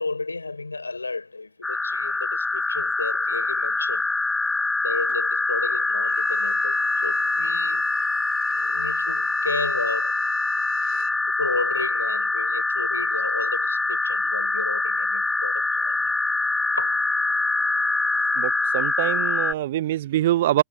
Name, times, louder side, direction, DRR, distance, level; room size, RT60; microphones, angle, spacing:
voice 1, 0.0-4.1 4.8-7.9 8.5-10.3 11.2-16.1 16.7-17.1, left 3 dB, 80° left, 4.9 m, -33 dB
sound 1, 1.6-19.5, left 3 dB, 10° left, 2.2 m, -24 dB
Bowed string instrument, 6.1-11.3 11.6-11.7, right 23 dB, 40° right, 4.6 m, -49 dB
voice 2, 18.4-20.6, right 14 dB, 55° right, 0.7 m, -24 dB
figure-of-eight pair, 90°, 0 cm